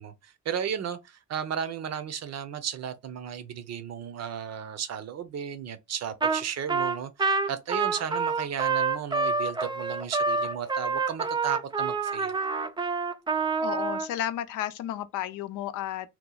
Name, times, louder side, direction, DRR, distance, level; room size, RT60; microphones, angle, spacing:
voice 1, 0.0-12.4, right 8 dB, 60° right, 0.7 m, -34 dB
Trumpet, 6.2-6.4 6.7-14.1, right 4 dB, 15° right, 0.4 m, -27 dB
voice 2, 13.6-16.1, left 12 dB, 85° left, 0.5 m, -32 dB
3.0 x 2.3 x 3.8 m
cardioid pair, 90°, 30 cm